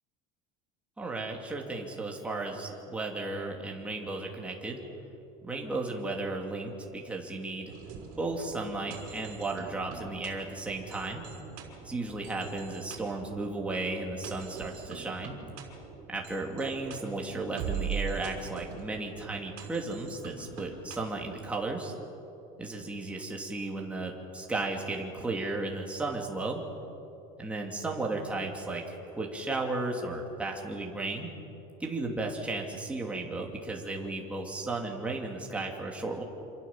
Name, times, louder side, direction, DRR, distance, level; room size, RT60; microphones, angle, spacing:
voice 1, 1.0-4.8 5.4-7.7 8.1-11.3 11.8-15.4 16.1-21.9 22.6-26.6 27.4-31.3 31.8-36.2, right 2 dB, 5° right, 0 dB, 2.8 m, -34 dB
sound 1, 7.7-21.5, right 7 dB, 50° right, 5.8 m, -42 dB
27.5 x 26.5 x 7.4 m, 2.8 s
cardioid pair, 175°, 19 cm